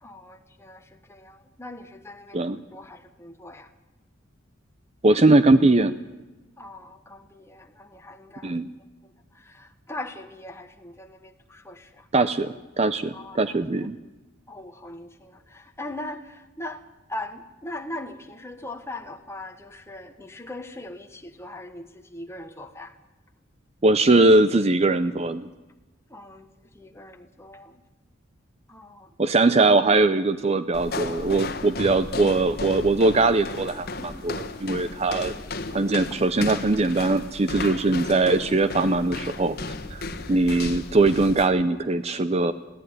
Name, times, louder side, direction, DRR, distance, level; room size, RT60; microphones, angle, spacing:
voice 1, 0.0-3.7 6.6-8.6 9.0-12.1 13.1-13.6 14.5-22.9 26.1-26.5 26.7-27.8 28.7-29.1 36.1-36.2, left 1 dB, 15° left, 5 dB, 1.3 m, -40 dB
voice 2, 5.0-5.9 8.4-8.7 12.1-14.0 23.8-25.5 29.2-35.3 35.7-42.5, right 2 dB, 35° right, 13 dB, 0.6 m, -21 dB
sound 1, 30.7-41.5, left 3 dB, 55° left, 1.5 m, -34 dB
21.5 x 15.0 x 9.6 m, 1.1 s
head